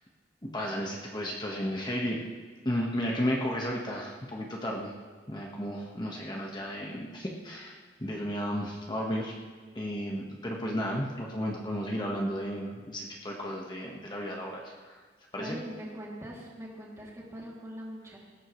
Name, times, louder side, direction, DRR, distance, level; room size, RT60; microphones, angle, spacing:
voice 1, 0.4-2.2 2.6-4.9 5.3-9.3 9.7-15.0 15.3-15.5, equal, 25° left, -2 dB, 1.4 m, -33 dB
voice 2, 15.4-18.2, equal, 15° right, -4 dB, 2.8 m, -42 dB
19.5 x 16.5 x 3.2 m, 1.5 s
head